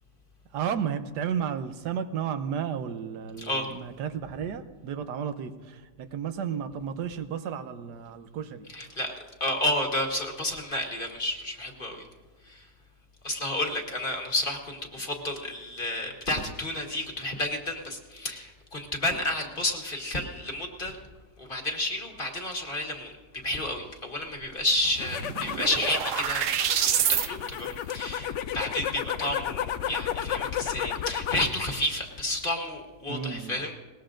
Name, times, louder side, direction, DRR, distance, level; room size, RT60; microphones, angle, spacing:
voice 1, 0.5-8.7 15.0-15.1 33.1-33.6, right 8 dB, 90° right, 9 dB, 1.4 m, -33 dB
voice 2, 3.4-3.7 8.7-12.0 12.5-12.6 13.2-21.0 21.4-23.1 23.4-33.7, left 1 dB, 35° left, 2 dB, 1.6 m, -31 dB
sound 1, 24.4-24.5 24.8-27.3, right 9 dB, 65° right, 0.9 m, -27 dB
sound 2, 24.8-31.6 31.9-32.5, left 9 dB, 65° left, 0.7 m, -33 dB
21.0 x 19.0 x 2.6 m, 1.4 s
omnidirectional pair, 1.8 m